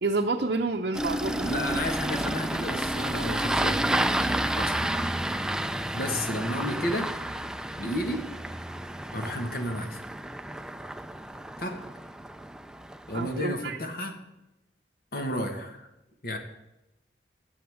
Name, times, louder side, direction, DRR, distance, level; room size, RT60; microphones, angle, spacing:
voice 1, 0.0-1.5 13.1-13.8, right 3 dB, 60° right, 2 dB, 0.6 m, -28 dB
Engine starting, 0.9-13.4, right 1 dB, 5° right, 0.3 m, -31 dB
voice 2, 1.5-5.0 5.9-7.1 7.8-8.3 9.1-10.0 11.6-11.8 13.1-14.2 15.1-15.9 16.2-16.4, left 1 dB, 55° left, 5 dB, 1.5 m, -32 dB
16.5 x 7.9 x 3.5 m, 0.95 s
head